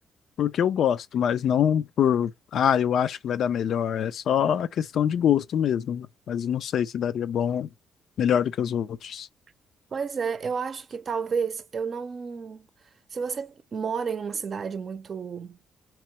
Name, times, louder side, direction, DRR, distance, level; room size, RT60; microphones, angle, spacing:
voice 1, 0.4-7.7 8.2-9.3, left 9 dB, 70° left, 0.4 m, -24 dB
voice 2, 9.9-12.7 13.1-15.6, right 6 dB, 45° right, 0.6 m, -31 dB
3.7 x 3.0 x 3.1 m
cardioid pair, 90°, 0 cm